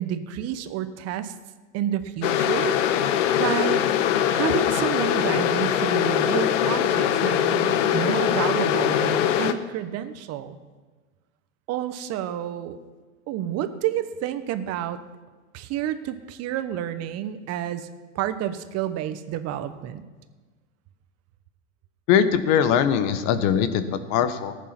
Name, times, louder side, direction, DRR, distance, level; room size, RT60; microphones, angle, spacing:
voice 1, 0.0-1.3 1.7-2.7 3.4-3.8 4.3-10.6 11.7-12.8 13.3-15.0 15.5-17.9 18.1-20.0, right 11 dB, 40° right, 11 dB, 1.0 m, -29 dB
sound 1, 2.2-9.5, left 9 dB, 75° left, 1.0 m, -22 dB
voice 2, 22.1-24.6, left 8 dB, 50° left, 11 dB, 1.2 m, -21 dB
14.5 x 8.4 x 5.8 m, 1.3 s
hypercardioid pair, 110°, 38 cm